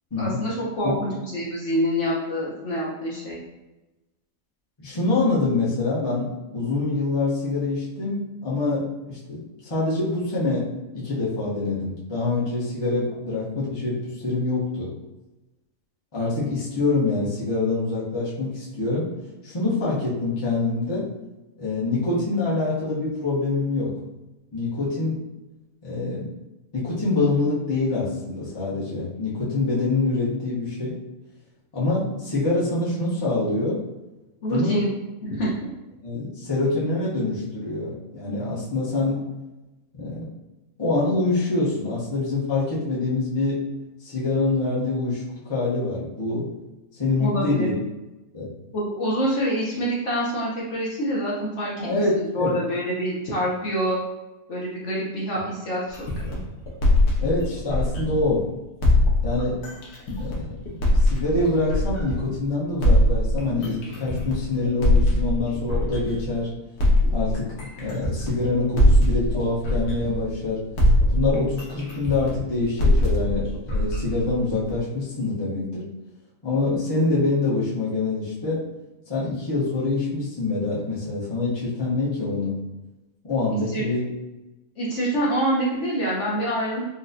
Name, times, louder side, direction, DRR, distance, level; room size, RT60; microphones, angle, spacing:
voice 1, 0.2-3.4 34.4-34.9 35.3-35.5 47.2-47.7 48.7-54.0 54.5-56.4 83.7-83.8 84.8-86.9, equal, 60° left, -6 dB, 1.0 m, -26 dB
voice 2, 4.8-10.7 10.9-14.9 16.1-19.1 19.4-21.1 21.6-24.0 24.5-25.2 25.8-26.3 26.7-30.9 31.7-33.8 34.5-34.8 36.0-39.2 39.9-40.3 40.8-43.6 44.0-46.5 47.0-47.7 48.3-48.5 51.8-52.5 57.2-58.5 59.2-59.6 60.2-66.5 67.1-70.6 71.1-75.9 76.4-78.6 79.1-82.6 83.2-84.0, left 3 dB, 25° left, -8 dB, 0.7 m, -25 dB
sound 1, 55.9-58.4 58.8-62.3 62.8-66.3 66.8-70.5 70.8-74.9, left 1 dB, 75° left, 1.3 m, -22 dB
4.0 x 2.2 x 2.5 m, 1.0 s
omnidirectional pair, 1.6 m